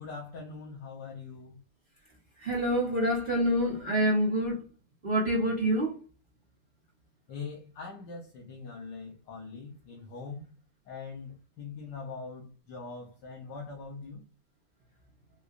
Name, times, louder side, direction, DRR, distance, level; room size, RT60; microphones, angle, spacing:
voice 1, 0.0-1.6 7.3-10.4 10.9-14.2, left 4 dB, 75° left, 1.4 m, -42 dB
voice 2, 2.4-4.6 5.0-6.0, equal, 35° right, 1.1 m, -27 dB
4.7 x 2.3 x 2.4 m
omnidirectional pair, 1.9 m